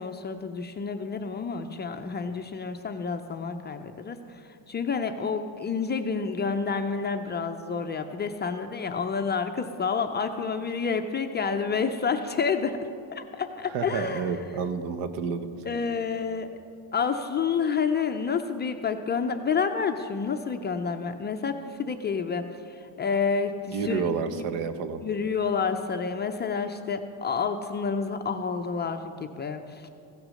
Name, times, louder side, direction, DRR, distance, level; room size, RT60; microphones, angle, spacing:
voice 1, 0.0-12.8 13.1-14.4 15.7-16.6 16.9-24.4 25.0-29.9, left 5 dB, 25° left, 6 dB, 0.3 m, -29 dB
voice 2, 13.7-15.5 23.7-25.0, right 6 dB, 85° right, 10 dB, 1.0 m, -30 dB
16.0 x 6.3 x 6.2 m, 2.5 s
cardioid pair, 135°, 48 cm